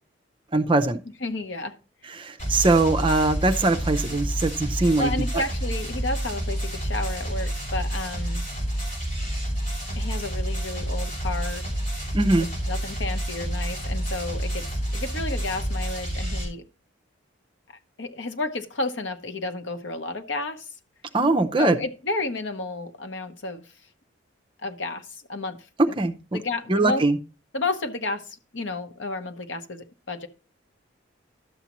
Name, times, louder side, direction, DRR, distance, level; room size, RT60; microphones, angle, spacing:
voice 1, 0.5-1.0 2.1-5.4 12.1-12.5 21.1-21.8 26.0-26.4 26.7-27.2, right 2 dB, 25° right, 0.6 m, -22 dB
voice 2, 1.2-1.7 5.0-8.4 10.0-11.7 12.7-14.7 14.9-16.6 18.0-20.7 21.6-23.6 24.6-25.6 25.9-26.0 26.3-27.0 27.5-30.3, left 2 dB, 70° left, 0.9 m, -31 dB
sound 1, 2.4-16.4, right 1 dB, 35° left, 5.4 m, -29 dB
12.0 x 7.1 x 3.0 m
head